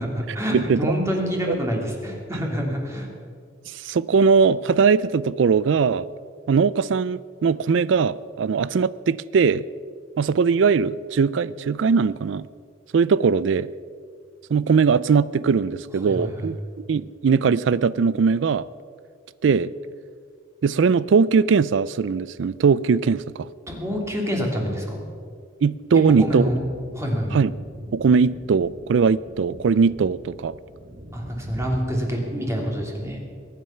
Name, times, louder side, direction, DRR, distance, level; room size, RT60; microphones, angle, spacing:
voice 1, 0.0-3.1 16.0-16.5 23.7-25.0 26.2-26.6 26.9-27.4 31.1-33.2, equal, 15° right, 0 dB, 2.8 m, -26 dB
voice 2, 0.5-0.9 1.5-1.6 3.8-6.0 6.5-9.6 10.2-12.4 12.9-13.7 14.5-18.6 19.4-19.7 20.6-23.5 25.6-26.4 27.3-27.5 27.9-30.6, right 5 dB, 75° right, 19 dB, 0.4 m, -20 dB
sound 1, 26.0-31.8, equal, 55° right, 5.3 m, -43 dB
22.0 x 9.5 x 5.7 m, 2.1 s
head